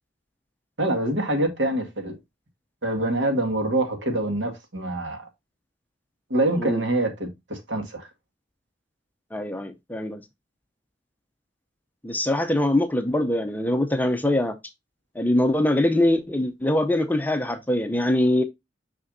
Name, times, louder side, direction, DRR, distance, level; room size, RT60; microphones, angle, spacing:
voice 1, 0.8-2.2 2.8-5.3 6.3-8.1, right 1 dB, 85° right, 1.9 m, -25 dB
voice 2, 9.3-10.2 12.0-14.5 15.2-18.4, left 1 dB, 10° left, 0.6 m, -23 dB
6.3 x 5.8 x 2.6 m
head